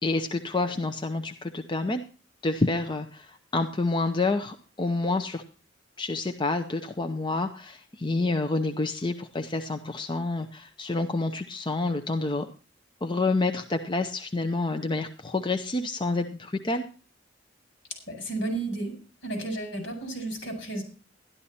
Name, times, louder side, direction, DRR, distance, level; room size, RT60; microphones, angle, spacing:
voice 1, 0.0-2.0 2.4-5.4 6.0-12.5 13.0-16.9, left 3 dB, 25° left, 6 dB, 0.7 m, -28 dB
voice 2, 18.1-18.9 19.2-20.8, right 2 dB, 70° left, 4 dB, 5.3 m, -32 dB
12.5 x 11.5 x 4.2 m, 0.36 s
head